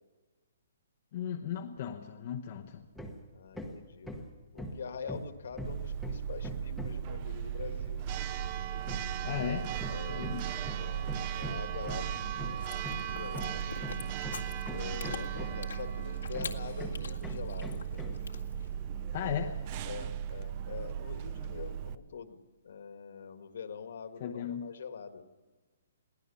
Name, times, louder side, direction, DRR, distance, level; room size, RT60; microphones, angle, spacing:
voice 1, 1.1-2.9 9.2-9.7 10.1-10.5 14.8-15.0 19.1-19.6 24.2-24.7, left 9 dB, 35° left, 1 dB, 1.0 m, -36 dB
Hammer, 3.0-3.3 3.5-7.1 8.9-15.8 16.3-18.3, equal, ahead, 1.2 m, -42 dB
voice 2, 3.3-4.1 4.5-8.0 8.8-10.3 10.8-13.9 14.7-18.2 18.9-19.4 19.9-25.2, left 6 dB, 55° left, 8 dB, 1.8 m, -45 dB
Church bell, 5.6-22.0, right 9 dB, 25° right, 0.6 m, -37 dB
Chewing mastication, 12.6-18.7, left 6 dB, 85° left, 1.9 m, -46 dB
22.5 x 16.5 x 7.0 m, 1.2 s
hypercardioid pair, 175°, 0 cm